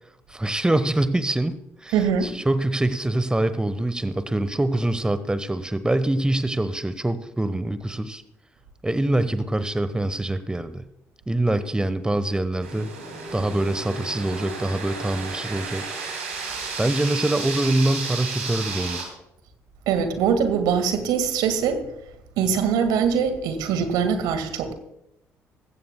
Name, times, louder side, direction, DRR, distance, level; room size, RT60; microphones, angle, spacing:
voice 1, 0.3-2.0 2.2-8.2 8.8-10.8 11.3-12.9 13.3-15.9 16.8-19.0, right 1 dB, 10° right, 13 dB, 1.0 m, -24 dB
voice 2, 1.9-2.3 19.9-21.8 22.4-24.7, right 7 dB, 65° right, 8 dB, 1.8 m, -22 dB
sound 1, 12.6-19.1, right 4 dB, 85° right, 2.7 m, -33 dB
20.0 x 15.5 x 2.2 m, 0.84 s
figure-of-eight pair, 45°, 7 cm